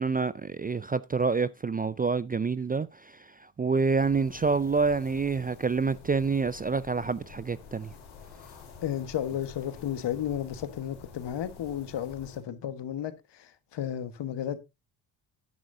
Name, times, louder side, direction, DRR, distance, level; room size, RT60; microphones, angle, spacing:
voice 1, 0.0-7.9, right 4 dB, 20° right, 0.4 m, -27 dB
sound 1, 3.9-12.4, left 5 dB, 90° left, 4.2 m, -49 dB
voice 2, 8.8-13.1 13.7-14.6, left 10 dB, 60° left, 1.5 m, -33 dB
11.0 x 10.5 x 2.7 m
hypercardioid pair, 55°, 48 cm